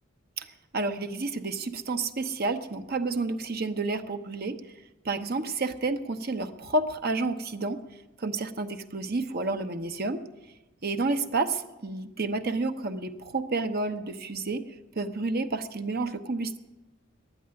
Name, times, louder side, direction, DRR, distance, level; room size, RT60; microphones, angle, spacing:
voice 1, 0.7-4.6 5.0-7.8 8.2-10.2 10.8-14.6 14.9-16.6, right 3 dB, 50° right, 9 dB, 0.9 m, -30 dB
12.5 x 10.0 x 9.6 m, 1.0 s
head